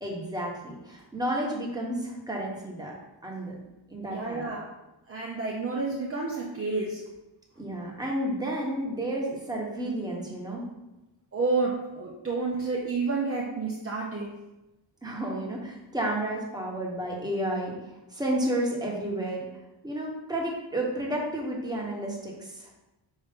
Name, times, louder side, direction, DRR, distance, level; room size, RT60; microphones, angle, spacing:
voice 1, 0.0-2.9 3.2-3.5 3.9-4.5 7.6-10.6 15.0-17.7 18.1-19.5 19.8-22.7, right 1 dB, 10° right, -3 dB, 1.3 m, -31 dB
voice 2, 4.1-4.7 5.1-7.0 11.3-14.3, right 3 dB, 30° right, -3 dB, 0.8 m, -30 dB
5.5 x 3.2 x 5.2 m, 0.99 s
wide cardioid pair, 110°, 46 cm